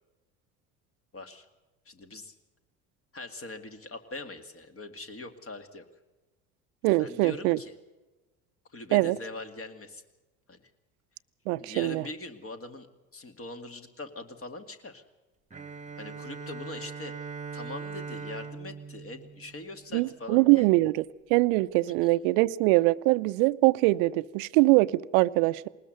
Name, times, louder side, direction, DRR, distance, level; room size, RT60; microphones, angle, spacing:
voice 1, 1.1-1.5 1.9-2.3 3.1-5.8 7.0-7.7 8.7-10.0 10.5-10.7 11.6-12.9 13.1-15.0 16.0-17.1 17.5-20.7 21.9-22.0, left 2 dB, 30° left, 8 dB, 2.3 m, -42 dB
voice 2, 6.8-7.6 8.9-9.2 11.5-12.0 19.9-21.0 21.3-25.7, right 21 dB, 65° right, 14 dB, 0.7 m, -23 dB
Bowed string instrument, 15.5-20.2, right 5 dB, 15° right, 1.5 m, -41 dB
20.5 x 19.5 x 6.7 m, 1.1 s
hypercardioid pair, 70°, 43 cm